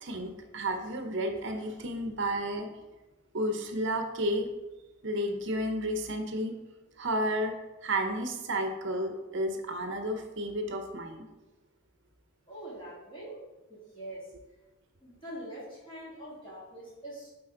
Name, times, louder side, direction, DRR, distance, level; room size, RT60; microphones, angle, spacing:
voice 1, 0.0-2.7 3.3-4.5 5.0-6.5 7.0-7.5 7.8-11.2, right 1 dB, 55° right, 5 dB, 0.7 m, -32 dB
voice 2, 12.5-13.4 13.7-14.3 15.0-17.3, right 1 dB, 25° left, -6 dB, 2.4 m, -43 dB
8.8 x 4.1 x 3.8 m, 1.1 s
head